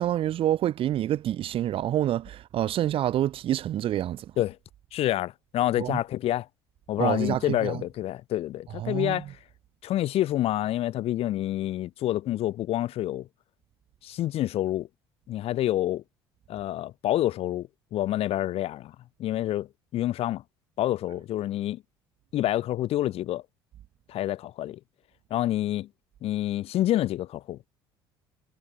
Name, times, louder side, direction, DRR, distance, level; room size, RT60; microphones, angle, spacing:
voice 1, 0.0-4.2 5.8-6.0 7.0-7.8 8.8-9.2, right 12 dB, 45° right, 1.8 m, -27 dB
voice 2, 4.9-6.5 6.9-9.3 9.8-13.3 14.0-14.9 15.3-16.0 16.5-18.9 19.2-19.7 19.9-20.4 20.8-21.8 22.3-23.4 24.1-24.8 25.3-25.9 26.2-27.7, left 13 dB, 50° left, 5.7 m, -27 dB
figure-of-eight pair, 60°, 13 cm